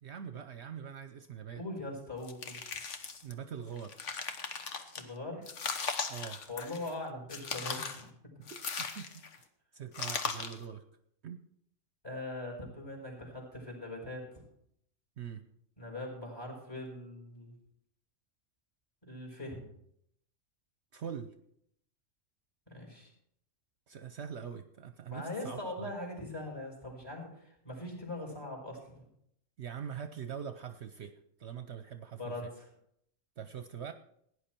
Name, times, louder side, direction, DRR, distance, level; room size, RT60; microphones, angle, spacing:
voice 1, 0.0-1.6 3.2-4.0 6.1-6.4 8.4-8.5 8.8-9.2 9.7-10.8 11.2-11.4 15.2-15.4 20.9-21.3 23.9-25.9 29.6-31.1 31.4-32.5 33.4-33.9, right 8 dB, 60° right, 9 dB, 1.0 m, -43 dB
voice 2, 1.5-2.6 5.0-5.5 6.5-8.3 12.0-14.2 15.8-17.5 19.0-19.7 22.7-23.1 25.1-29.1 32.2-32.7, left 1 dB, 20° left, 0 dB, 4.7 m, -41 dB
sound 1, 2.2-3.3 3.8-5.0 5.5-6.9 7.3-8.0 8.5-9.4 9.9-10.6, left 5 dB, 70° left, 1.4 m, -38 dB
16.5 x 10.0 x 4.4 m, 0.71 s
omnidirectional pair, 1.3 m